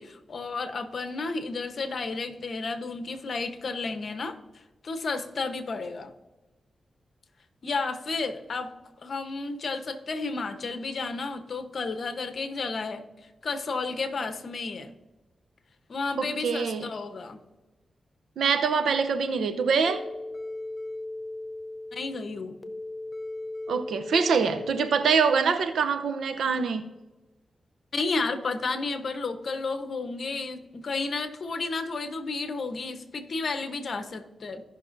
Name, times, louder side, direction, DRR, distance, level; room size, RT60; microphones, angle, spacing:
voice 1, 0.0-4.4 4.8-6.1 7.6-8.7 9.0-13.0 13.4-14.9 15.9-17.4 21.9-22.6 27.9-34.6, left 3 dB, 60° left, 7 dB, 1.1 m, -32 dB
voice 2, 16.2-16.9 18.4-20.0 23.7-26.9, right 5 dB, 85° right, 8 dB, 0.8 m, -24 dB
sound 1, 19.9-25.4, left 2 dB, 35° left, 0.8 m, -38 dB
16.5 x 6.0 x 2.7 m, 1.1 s
cardioid pair, 65°, 0 cm